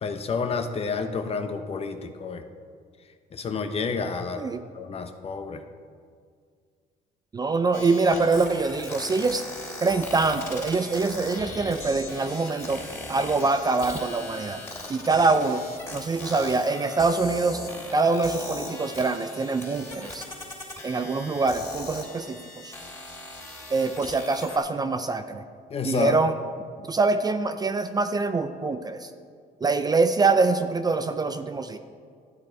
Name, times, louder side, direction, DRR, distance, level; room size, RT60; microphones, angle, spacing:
voice 1, 0.0-2.4 3.3-4.4 4.7-5.6 25.7-26.2, left 5 dB, 35° left, 7 dB, 0.9 m, -29 dB
voice 2, 7.3-9.5 9.8-12.8 13.1-14.6 14.9-15.6 15.9-17.6 17.9-20.3 20.8-22.7 23.7-25.4 25.8-26.3 26.9-29.1 29.6-31.8, right 3 dB, 25° right, 9 dB, 0.4 m, -24 dB
sound 1, 7.7-24.6, left 2 dB, 15° left, 2.9 m, -39 dB
12.5 x 9.0 x 4.6 m, 2.1 s
cardioid pair, 110°, 17 cm